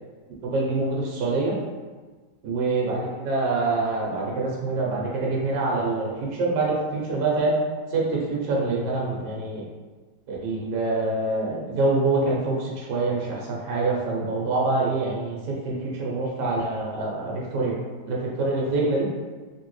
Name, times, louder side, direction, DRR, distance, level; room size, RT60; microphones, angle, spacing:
voice 1, 0.4-1.5 2.4-6.1 6.4-7.5 7.9-9.6 10.3-17.8 18.0-19.1, right 3 dB, 70° right, -4 dB, 1.4 m, -25 dB
3.3 x 2.7 x 3.1 m, 1.4 s
omnidirectional pair, 2.0 m